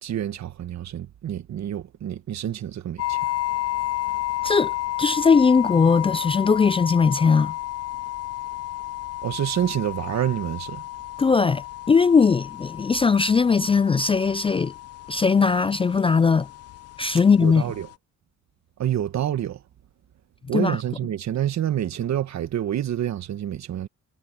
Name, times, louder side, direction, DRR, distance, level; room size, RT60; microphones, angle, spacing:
voice 1, 0.0-3.2 9.2-10.8 17.4-17.9 18.8-19.6 20.5-23.9, right 11 dB, 65° right, 1.6 m, -27 dB
sound 1, 3.0-17.9, left 16 dB, 55° left, 0.7 m, -32 dB
voice 2, 4.4-7.6 11.2-14.7 15.1-16.5 17.0-17.6 20.5-20.8, left 5 dB, 20° left, 0.3 m, -19 dB
cardioid pair, 90°, 30 cm